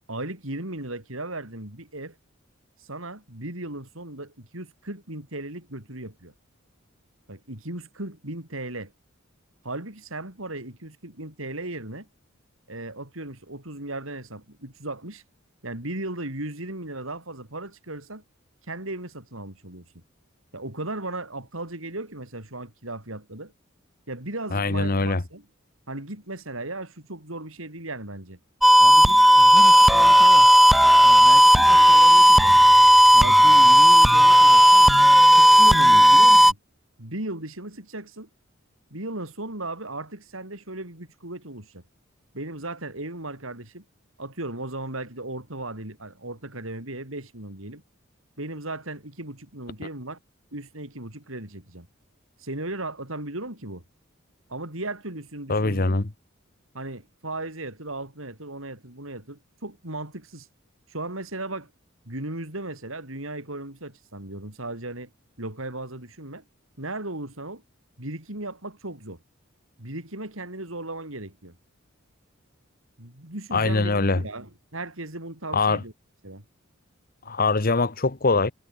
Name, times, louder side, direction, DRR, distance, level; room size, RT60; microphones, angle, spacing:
voice 1, 0.1-2.2 2.8-6.3 7.3-8.9 9.6-12.1 12.7-15.2 15.6-18.2 18.7-19.8 20.5-23.5 24.1-25.5 25.9-28.4 28.8-30.5 31.0-32.6 33.1-34.9 35.3-36.6 37.0-38.3 38.9-41.8 42.3-43.8 44.2-47.8 48.4-50.2 50.5-51.9 52.4-53.8 54.5-56.0 56.7-60.5 60.9-61.7 62.0-65.1 65.4-66.4 66.8-67.6 68.0-69.2 69.8-71.6 73.0-75.9 76.2-76.4 77.2-77.4, right 2 dB, 75° right, 6.4 m, -36 dB
voice 2, 24.5-25.2 55.5-56.1 73.5-74.2 75.5-75.8 77.2-78.5, left 3 dB, 45° left, 1.2 m, -22 dB
sound 1, 28.6-36.5, equal, ahead, 0.5 m, -13 dB
head